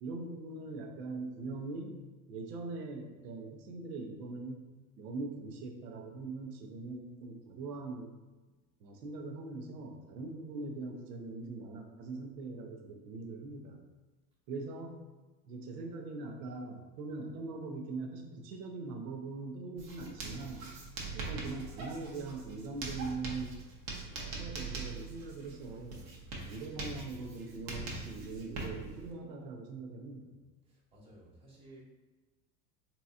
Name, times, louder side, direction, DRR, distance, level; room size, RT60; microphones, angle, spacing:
voice 1, 0.0-2.0 2.3-4.7 5.0-8.1 8.8-13.8 14.5-15.0 15.4-20.7 21.1-23.6 24.1-26.0 26.4-30.4, right 3 dB, 70° right, 3 dB, 0.8 m, -42 dB
Writing, 19.8-29.1, right 3 dB, 45° right, 0.9 m, -42 dB
voice 2, 30.6-31.8, right 1 dB, 10° right, -6 dB, 1.3 m, -56 dB
3.8 x 2.8 x 2.4 m, 1.2 s
hypercardioid pair, 80°, 49 cm